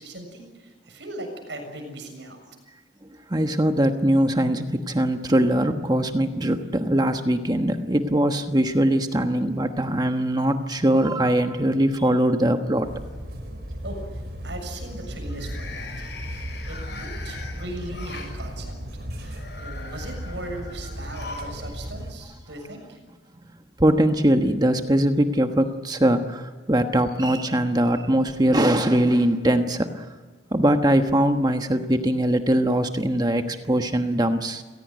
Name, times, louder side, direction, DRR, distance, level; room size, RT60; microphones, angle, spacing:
voice 1, 0.0-2.4 13.8-18.7 19.2-23.0, right 1 dB, 90° right, 4 dB, 7.1 m, -39 dB
voice 2, 3.3-12.9 23.8-30.1 30.5-34.6, right 1 dB, 20° right, 6 dB, 1.2 m, -21 dB
sound 1, 11.7-12.4 12.7-13.1 15.2-18.3 19.2-21.6 21.9-22.0 23.1-23.2, left 4 dB, 75° left, 7.0 m, -41 dB
sound 2, 12.8-22.1, equal, 70° right, 4.9 m, -35 dB
28.5 x 17.0 x 9.4 m, 1.4 s
head